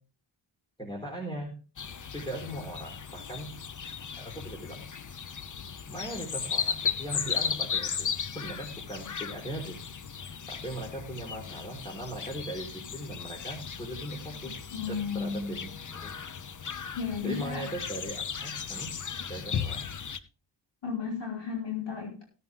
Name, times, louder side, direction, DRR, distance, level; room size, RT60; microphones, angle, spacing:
voice 1, 0.8-1.5 2.1-3.5 4.1-4.8 5.9-9.8 10.2-16.1 17.2-19.0 19.3-19.8, right 1 dB, 10° left, -1 dB, 4.2 m, -39 dB
sound 1, 1.8-20.2, left 6 dB, 40° left, 0.9 m, -36 dB
voice 2, 14.7-15.6 17.0-17.7 20.8-22.2, left 5 dB, 60° left, -1 dB, 5.3 m, -33 dB
16.5 x 9.5 x 3.6 m, 0.35 s
cardioid pair, 85°, 49 cm